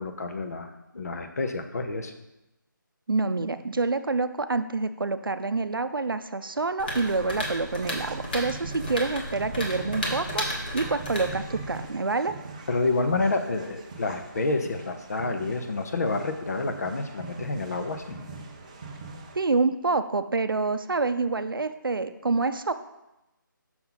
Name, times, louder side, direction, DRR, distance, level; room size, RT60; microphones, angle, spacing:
voice 1, 0.0-2.1 12.7-18.2, left 3 dB, 50° left, 7 dB, 0.7 m, -29 dB
voice 2, 3.1-10.4 10.7-12.4 19.4-22.7, right 3 dB, 90° right, 11 dB, 0.5 m, -27 dB
sound 1, 6.8-12.0, left 1 dB, 25° left, 1.0 m, -34 dB
sound 2, 7.0-19.4, right 4 dB, 20° right, 0.4 m, -42 dB
6.0 x 5.5 x 3.9 m, 0.92 s
figure-of-eight pair, 165°, 11 cm